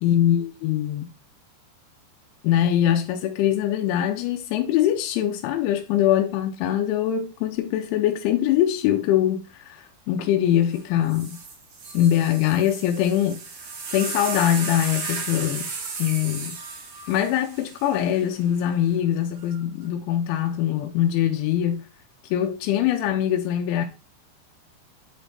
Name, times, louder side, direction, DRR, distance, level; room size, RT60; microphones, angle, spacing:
voice 1, 0.0-1.1 2.4-11.4 11.9-13.4 13.9-15.7 16.0-16.6 17.1-21.9 22.3-23.9, left 11 dB, 90° left, 3.0 m, -23 dB
sound 1, 10.7-10.8 11.1-18.5 19.4-19.8, right 4 dB, 60° right, 2.0 m, -35 dB
8.2 x 3.4 x 3.9 m
omnidirectional pair, 5.3 m